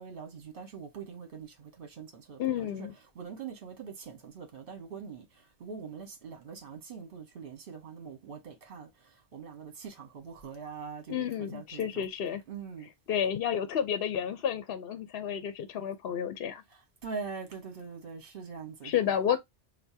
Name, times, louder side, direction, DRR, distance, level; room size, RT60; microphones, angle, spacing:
voice 1, 0.0-2.9 3.1-5.2 5.6-8.9 9.3-12.1 12.5-12.9 17.0-19.2, right 6 dB, 55° right, 1.3 m, -43 dB
voice 2, 2.4-2.9 11.1-12.4 13.1-16.6 18.8-19.4, left 9 dB, 65° left, 0.8 m, -31 dB
6.5 x 2.2 x 2.7 m
omnidirectional pair, 1.1 m